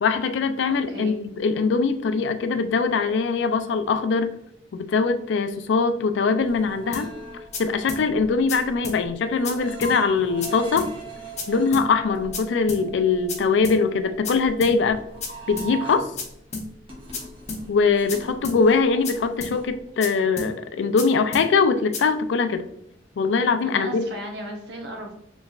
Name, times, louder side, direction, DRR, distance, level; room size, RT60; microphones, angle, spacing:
voice 1, 0.0-4.3 4.7-7.1 7.6-10.9 11.5-15.0 15.5-16.1 17.7-22.6 23.2-24.1, left 4 dB, 90° left, 9 dB, 0.4 m, -22 dB
voice 2, 0.7-1.1 23.6-25.2, right 1 dB, 70° right, 1 dB, 0.9 m, -35 dB
sound 1, 6.4-16.3 16.6-19.9, right 2 dB, 30° right, 0.8 m, -40 dB
sound 2, 6.9-7.1 7.5-7.6 7.9-8.0 8.5-8.6 8.8-9.0 9.4-9.5 9.8-9.9 10.4-10.5 10.8-10.9 11.4-11.5 11.7-11.9 12.3-12.4 12.7-12.8 13.3-13.4 13.6-13.8 14.2-14.3 14.6-14.7 15.2-15.3 15.6-15.7 16.2-16.3 16.5-16.7 17.1-17.2 17.5-17.6 18.1-18.2 18.4-18.6 19.0-19.1 19.4-19.5 20.0-20.1 20.4-20.5 21.0-21.1 21.3-21.5 21.9-22.0, left 4 dB, 40° left, 0.7 m, -31 dB
3.4 x 3.0 x 2.3 m, 0.78 s
head